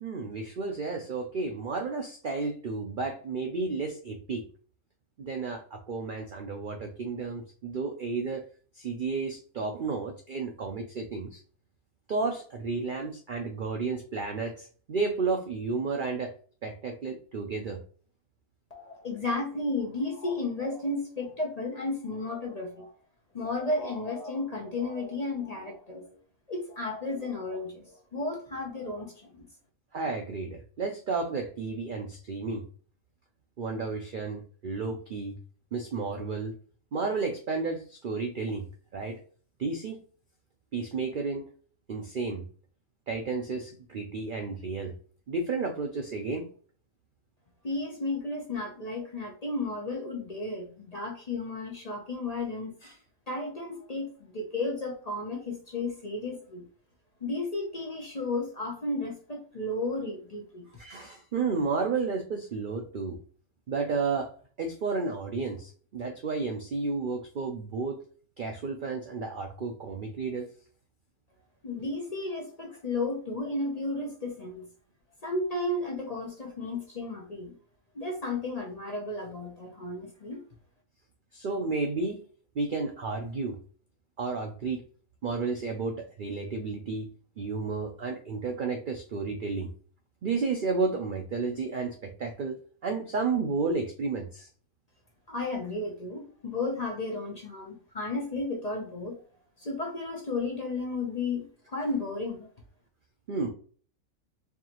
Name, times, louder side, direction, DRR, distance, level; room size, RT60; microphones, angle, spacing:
voice 1, 0.0-4.4 5.2-8.5 8.8-11.4 12.1-16.3 16.6-17.8 29.9-32.6 33.6-35.4 35.7-36.6 36.9-38.7 38.9-39.2 39.6-40.0 40.7-41.4 41.9-42.5 43.1-44.9 45.3-46.5 60.8-63.2 63.7-64.3 64.6-68.0 68.4-70.5 81.3-82.2 82.6-83.6 84.2-84.8 85.2-87.1 87.4-89.7 90.2-94.5 103.3-103.5, right 4 dB, 65° right, 4 dB, 0.5 m, -32 dB
voice 2, 18.7-22.9 23.3-26.1 26.5-29.5 47.6-53.0 53.3-56.6 57.2-60.7 71.6-74.7 75.2-77.5 77.9-80.4 95.3-99.2 99.6-102.5, left 2 dB, 35° left, 0 dB, 0.7 m, -33 dB
4.6 x 2.7 x 2.9 m, 0.43 s
omnidirectional pair, 1.5 m